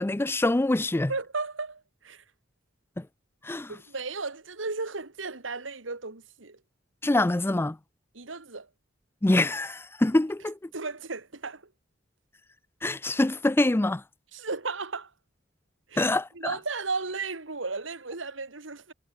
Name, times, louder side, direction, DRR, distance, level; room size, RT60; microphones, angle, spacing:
voice 1, 0.0-1.1 3.0-3.1 3.4-3.7 7.0-7.8 9.2-10.6 12.8-14.0 16.0-16.5, left 2 dB, 10° left, 0.4 m, -25 dB
voice 2, 1.1-2.2 3.7-6.6 8.1-8.7 10.7-11.7 14.3-15.1 15.9-18.9, right 3 dB, 80° right, 2.2 m, -35 dB
head